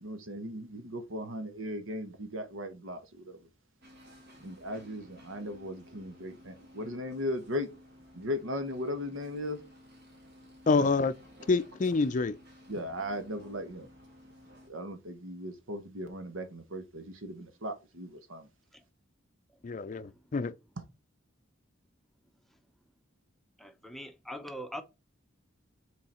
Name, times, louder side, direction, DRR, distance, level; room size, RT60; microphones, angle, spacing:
voice 1, 0.0-3.4 4.4-7.7 8.1-9.6 12.7-13.9 14.7-18.5, left 1 dB, 90° right, 1.2 m, -37 dB
sound 1, 3.8-14.7, equal, 55° right, 2.2 m, -55 dB
voice 2, 10.7-11.1 11.5-12.4 19.6-20.5, left 4 dB, 40° left, 0.4 m, -27 dB
voice 3, 19.5-20.3 22.5-22.6 23.6-24.8, equal, ahead, 0.7 m, -44 dB
6.2 x 3.9 x 4.3 m
head